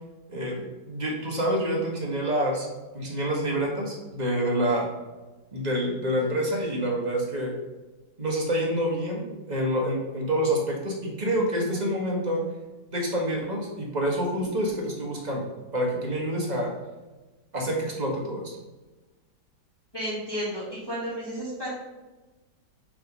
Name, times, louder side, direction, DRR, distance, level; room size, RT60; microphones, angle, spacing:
voice 1, 0.9-2.7 2.9-4.9 5.5-7.5 8.2-12.4 12.9-15.4 15.7-16.7 17.5-18.5, equal, 25° right, -1 dB, 1.8 m, -27 dB
voice 2, 19.9-21.7, equal, 15° left, -7 dB, 2.2 m, -32 dB
6.9 x 4.4 x 5.4 m, 1.2 s
omnidirectional pair, 1.9 m